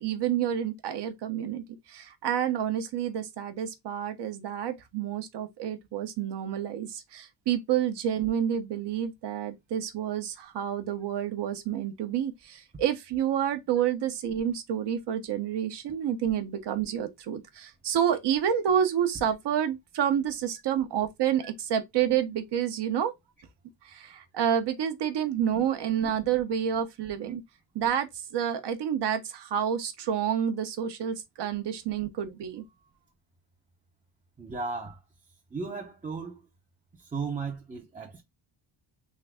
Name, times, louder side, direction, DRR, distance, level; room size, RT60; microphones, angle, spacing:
voice 1, 0.0-23.1 23.8-27.4 27.7-32.6, right 9 dB, 55° right, 0.9 m, -29 dB
voice 2, 34.4-35.0 35.5-36.5 36.9-38.2, right 4 dB, 15° right, 0.7 m, -35 dB
3.8 x 2.6 x 3.3 m
cardioid pair, 120°, 48 cm